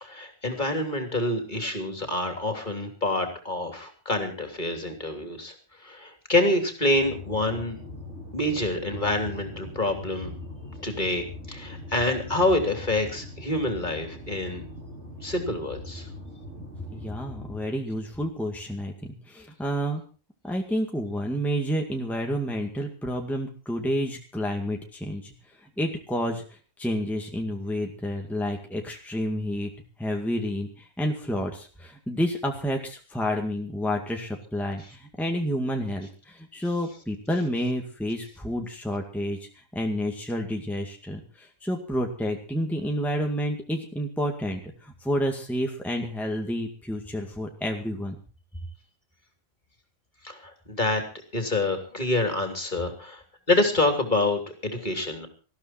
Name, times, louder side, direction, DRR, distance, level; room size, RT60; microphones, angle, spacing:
voice 1, 0.0-5.5 5.8-7.8 8.3-10.3 10.8-14.6 15.2-16.1 50.2-51.0 51.3-53.2 53.5-55.3, left 2 dB, 35° left, 5 dB, 3.3 m, -27 dB
sound 1, 6.9-17.6, left 2 dB, 60° right, 4.8 m, -41 dB
voice 2, 16.9-20.0 20.4-25.3 25.6-26.4 26.8-29.7 30.0-39.4 39.7-48.2, equal, ahead, 2 dB, 2.0 m, -29 dB
19.5 x 14.5 x 4.3 m, 0.36 s
omnidirectional pair, 1.4 m